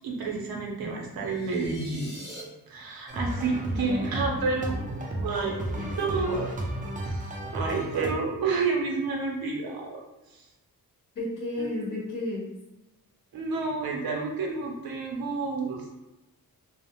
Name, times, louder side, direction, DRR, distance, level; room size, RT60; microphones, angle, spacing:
voice 1, 0.0-2.1 2.7-4.8 5.2-6.5 7.0-10.0 10.3-10.5 11.6-11.9 13.3-15.9, right 4 dB, 75° right, -1 dB, 0.7 m, -30 dB
sound 1, 1.2-2.4, equal, 15° left, 1.0 m, -44 dB
sound 2, 3.1-8.1, right 1 dB, 20° right, 0.4 m, -33 dB
voice 2, 3.4-4.1 5.7-5.9 11.1-12.5, left 2 dB, 60° left, -2 dB, 0.9 m, -33 dB
2.4 x 2.0 x 2.9 m, 1.0 s
wide cardioid pair, 110°, 36 cm